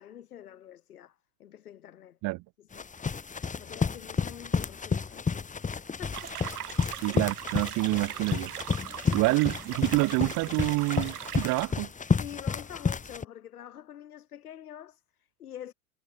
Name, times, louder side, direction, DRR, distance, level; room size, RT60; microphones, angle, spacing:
voice 1, 0.0-2.2 2.6-2.9 3.6-6.4 8.8-9.2 12.1-15.7, left 11 dB, 90° left, 2.9 m, -47 dB
sound 1, 2.7-13.2, left 5 dB, 15° left, 2.7 m, -31 dB
sound 2, 6.1-11.7, right 11 dB, 90° right, 2.3 m, -40 dB
voice 2, 7.0-8.5 9.1-11.9, right 22 dB, 45° right, 1.0 m, -27 dB
hypercardioid pair, 100°, 43 cm